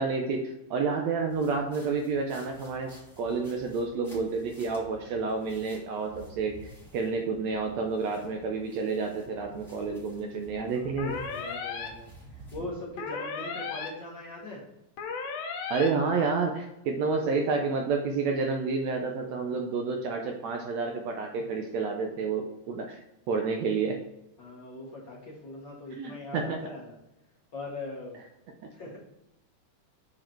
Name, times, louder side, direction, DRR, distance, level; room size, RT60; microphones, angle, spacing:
voice 1, 0.0-6.6 6.9-11.2 15.7-23.0 23.3-24.0 25.9-26.6, right 4 dB, 75° right, 3 dB, 1.7 m, -29 dB
sound 1, 1.3-12.7, right 1 dB, ahead, 2.2 m, -51 dB
voice 2, 10.7-14.6 24.4-26.9 27.5-28.2 28.7-29.0, left 2 dB, 50° left, -4 dB, 1.5 m, -41 dB
sound 2, 11.0-11.9 13.0-13.9 15.0-15.9, left 5 dB, 65° left, 1.8 m, -35 dB
7.5 x 4.8 x 4.4 m, 0.91 s
omnidirectional pair, 3.7 m